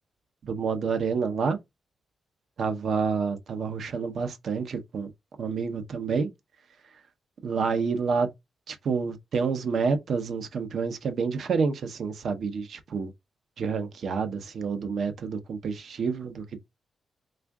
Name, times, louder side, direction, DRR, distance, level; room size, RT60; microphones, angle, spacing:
voice 1, 0.4-1.6 2.6-5.1 5.4-6.3 7.4-8.3 8.7-13.1 13.6-16.6, right 5 dB, 60° right, 0.7 m, -28 dB
3.4 x 2.5 x 3.5 m
wide cardioid pair, 145°, 0 cm